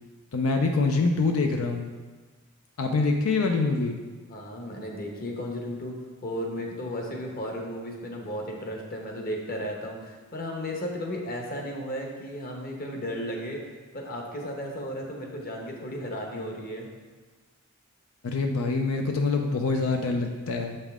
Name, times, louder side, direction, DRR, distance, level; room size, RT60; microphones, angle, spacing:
voice 1, 0.3-1.9 2.8-4.0 18.2-20.9, left 3 dB, 85° left, 4 dB, 0.5 m, -25 dB
voice 2, 4.3-6.0 6.2-13.6 13.9-16.9, equal, 45° left, 1 dB, 1.0 m, -34 dB
7.1 x 5.5 x 3.6 m, 1.4 s
head